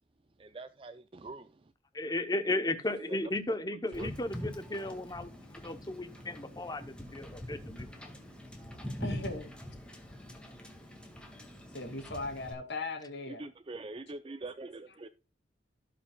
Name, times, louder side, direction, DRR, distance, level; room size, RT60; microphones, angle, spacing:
voice 1, 0.4-1.5 3.1-3.3 3.7-4.1 6.7-6.9 13.3-15.1, right 2 dB, 30° right, 0.4 m, -44 dB
voice 2, 1.9-5.3 5.6-7.9, left 2 dB, 20° left, 0.8 m, -35 dB
Wind / Boat Water vehicle, 3.9-12.5, left 1 dB, 5° left, 1.9 m, -44 dB
voice 3, 9.0-9.5 11.7-13.4, left 3 dB, 75° left, 2.6 m, -38 dB
17.0 x 5.7 x 2.3 m
head